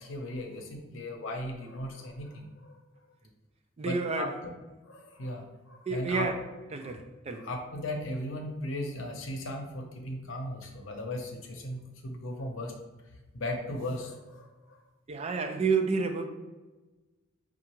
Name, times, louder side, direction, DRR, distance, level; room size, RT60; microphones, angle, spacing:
voice 1, 0.0-2.8 3.8-4.3 4.9-6.3 6.8-6.9 7.4-12.7 13.3-14.8, left 1 dB, 85° left, 0.7 m, -37 dB
voice 2, 3.8-4.4 5.9-6.4 6.7-7.5 15.1-16.3, right 4 dB, 35° right, 0.4 m, -30 dB
5.4 x 2.4 x 2.9 m
head